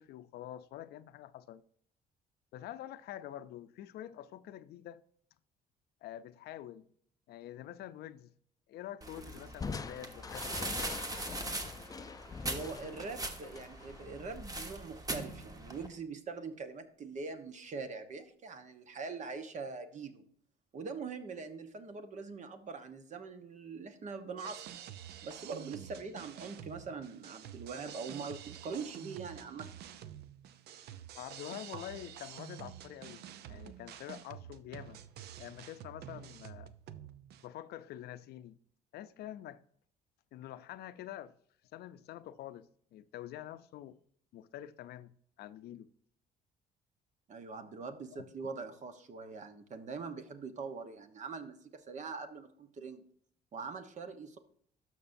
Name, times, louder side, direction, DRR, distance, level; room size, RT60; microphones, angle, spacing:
voice 1, 0.0-1.6 2.5-5.0 6.0-6.9 7.3-8.3 8.7-11.1 12.8-12.9 31.1-33.2 33.5-35.0 35.4-36.7 37.4-38.5 38.9-39.6 40.3-41.4 41.7-44.0 44.3-45.9 48.1-48.3, left 12 dB, 70° left, 0.5 m, -46 dB
sound 1, 9.0-15.9, right 2 dB, 20° right, 1.1 m, -41 dB
Crushing, 9.6-15.0, left 4 dB, 20° left, 0.5 m, -44 dB
voice 2, 12.5-20.2 20.7-24.8 25.2-29.7 31.7-31.8 47.3-53.0 53.5-54.4, right 4 dB, 45° right, 1.1 m, -43 dB
sound 2, 24.4-37.5, right 10 dB, 75° right, 0.6 m, -49 dB
12.5 x 6.0 x 2.6 m
cardioid pair, 110°, 17 cm